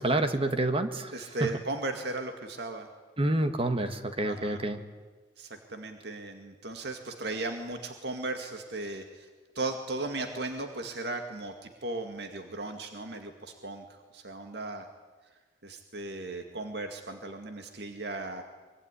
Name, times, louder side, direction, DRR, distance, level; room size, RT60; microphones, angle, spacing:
voice 1, 0.0-1.5 3.2-4.8, right 1 dB, 30° right, 8 dB, 1.7 m, -28 dB
voice 2, 1.1-2.9 4.2-4.6 5.4-9.3 9.6-14.9 15.6-18.4, right 2 dB, 65° right, 5 dB, 2.2 m, -36 dB
24.5 x 24.0 x 10.0 m, 1.3 s
head